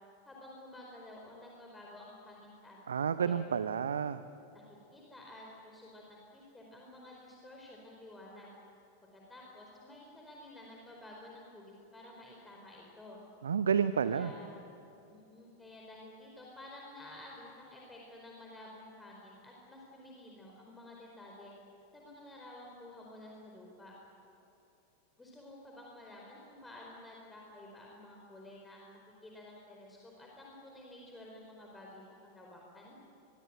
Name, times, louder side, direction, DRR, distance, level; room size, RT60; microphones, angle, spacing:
voice 1, 0.2-2.8 3.2-3.4 4.5-4.6 4.9-8.5 9.1-13.2 14.0-14.6 15.1-21.5 21.9-23.9 25.2-33.0, left 1 dB, 10° left, -2 dB, 4.6 m, -52 dB
voice 2, 2.9-4.2 13.4-14.3, right 7 dB, 70° right, 13 dB, 0.7 m, -30 dB
25.0 x 23.0 x 9.1 m, 2.9 s
figure-of-eight pair, 90°, 0 cm